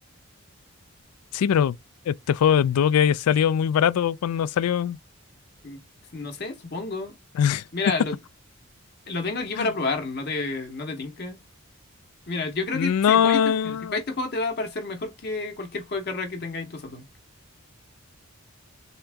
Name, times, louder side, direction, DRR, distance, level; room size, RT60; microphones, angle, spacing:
voice 1, 1.3-1.8 2.1-5.0 7.4-7.6 9.6-9.7 12.7-14.0, left 8 dB, 85° left, 0.3 m, -21 dB
voice 2, 6.1-7.1 7.7-8.2 9.1-11.4 12.3-17.0, left 3 dB, 45° left, 0.8 m, -30 dB
3.5 x 2.8 x 3.3 m
head